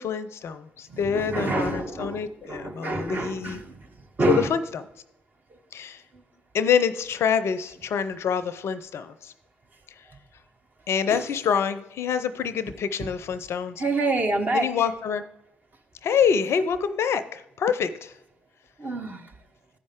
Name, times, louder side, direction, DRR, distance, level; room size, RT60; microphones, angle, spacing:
voice 1, 0.0-3.6 4.3-4.8 5.7-6.0 6.5-9.3 10.0-10.1 10.9-13.8 14.5-15.2 16.0-18.1, left 7 dB, 50° left, 0.5 m, -26 dB
voice 2, 0.9-3.8 4.2-4.6 11.1-11.4 13.8-14.9 18.8-19.3, right 2 dB, 35° right, 1.1 m, -27 dB
13.0 x 5.2 x 3.6 m
figure-of-eight pair, 45°, 6 cm